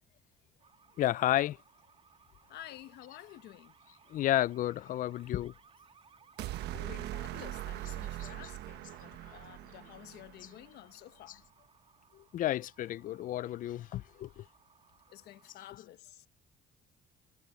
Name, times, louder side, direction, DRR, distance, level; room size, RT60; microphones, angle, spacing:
sound 1, 0.6-15.7, right 6 dB, 35° right, 2.8 m, -64 dB
voice 1, 1.0-1.6 4.1-5.5 6.7-6.9 12.3-14.4, left 13 dB, 55° left, 0.4 m, -31 dB
voice 2, 2.5-3.8 6.7-11.4 15.1-16.3, left 13 dB, 75° left, 1.4 m, -51 dB
sound 2, 6.4-10.6, right 15 dB, 80° right, 1.3 m, -41 dB
cardioid pair, 110°, 17 cm